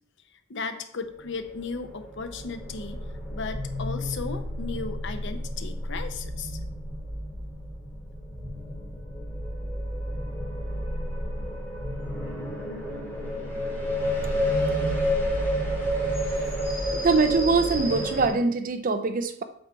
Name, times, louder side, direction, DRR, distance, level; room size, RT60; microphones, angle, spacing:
voice 1, 0.5-3.0 3.3-6.6, left 4 dB, 55° left, 8 dB, 0.7 m, -35 dB
sound 1, 1.4-18.3, equal, 10° left, 2.6 m, -30 dB
voice 2, 16.9-19.4, right 4 dB, 40° right, 9 dB, 0.5 m, -23 dB
7.7 x 4.0 x 4.5 m, 0.65 s
head